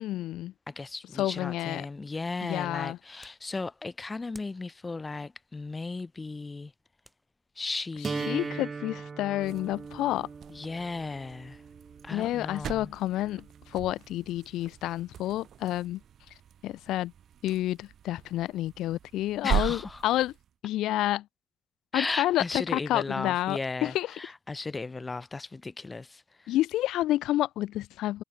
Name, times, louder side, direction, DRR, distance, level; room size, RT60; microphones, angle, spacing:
voice 1, 0.0-0.5 1.2-1.9 2.4-3.0 8.3-10.3 12.1-16.0 16.6-17.1 17.4-20.3 20.6-21.3 21.9-22.4 22.7-24.1 26.5-28.2, left 14 dB, 85° left, 0.3 m, -29 dB
voice 2, 0.7-6.7 7.5-8.6 10.5-11.6 12.0-12.9 19.4-20.1 21.9-26.5, left 3 dB, 25° left, 1.2 m, -36 dB
sound 1, 2.3-9.1, equal, ahead, 4.1 m, -62 dB
sound 2, 8.0-14.0, right 5 dB, 35° right, 0.4 m, -40 dB
sound 3, 9.4-20.5, right 9 dB, 65° right, 0.7 m, -39 dB
cardioid pair, 90°, 0 cm